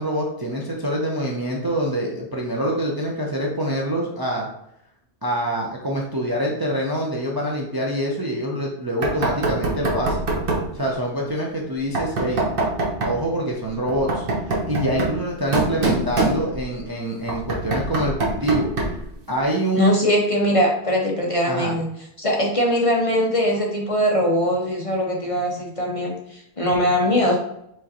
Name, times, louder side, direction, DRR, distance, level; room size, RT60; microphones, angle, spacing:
voice 1, 0.0-4.5 5.2-10.2 10.7-12.4 13.0-18.7 19.3-20.0 21.5-21.7, right 1 dB, 25° right, -2 dB, 0.6 m, -25 dB
Knock, 9.0-10.7 11.9-13.2 13.9-16.8 17.3-19.1, right 2 dB, 55° right, 1.1 m, -24 dB
voice 2, 19.7-21.9 22.2-27.4, equal, 35° left, -1 dB, 0.8 m, -21 dB
4.8 x 3.7 x 2.9 m, 0.76 s
omnidirectional pair, 1.1 m